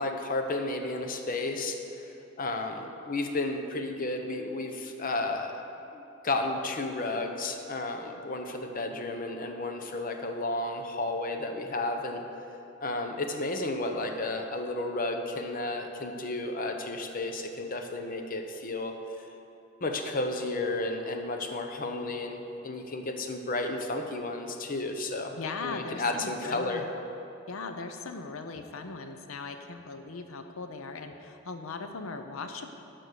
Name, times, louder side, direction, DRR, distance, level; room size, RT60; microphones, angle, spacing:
voice 1, 0.0-5.5 5.9-12.2 12.8-19.0 19.8-25.4 25.6-26.8, left 2 dB, 45° left, 5 dB, 0.8 m, -32 dB
voice 2, 25.3-26.9 27.5-32.7, left 4 dB, 85° left, 6 dB, 0.6 m, -39 dB
11.0 x 6.0 x 6.8 m, 2.8 s
head